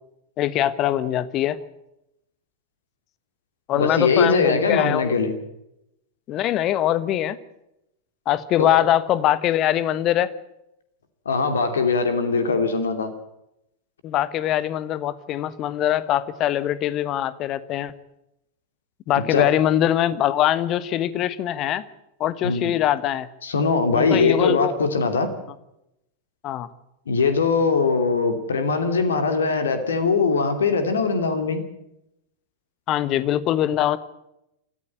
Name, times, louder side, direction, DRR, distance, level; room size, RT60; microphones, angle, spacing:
voice 1, 0.4-1.6 3.7-5.1 6.3-7.4 8.3-10.3 14.0-17.9 19.1-21.8 22.2-23.3 23.9-24.7 26.4-26.7 32.9-34.0, left 12 dB, 35° left, 17 dB, 1.3 m, -22 dB
voice 2, 3.7-5.3 8.6-8.7 11.2-13.1 19.3-19.4 22.4-22.7 23.4-25.3 27.1-31.6, left 4 dB, 70° left, 8 dB, 2.8 m, -21 dB
26.5 x 14.5 x 8.6 m, 0.85 s
figure-of-eight pair, 90°, 0 cm